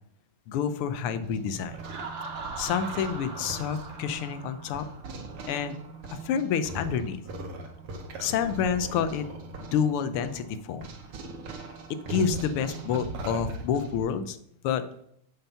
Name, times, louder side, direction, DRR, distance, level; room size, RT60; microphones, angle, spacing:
voice 1, 0.5-1.8 2.6-4.9 5.5-5.8 6.2-7.2 8.2-9.3 9.7-10.9 12.1-14.4 14.6-14.8, left 7 dB, 85° left, 11 dB, 1.6 m, -28 dB
sound 1, 0.9-14.0, right 3 dB, 85° right, 2.1 m, -40 dB
Laughter, 1.8-5.5, right 4 dB, 65° right, 2.2 m, -40 dB
9.0 x 5.8 x 5.6 m, 0.72 s
omnidirectional pair, 2.4 m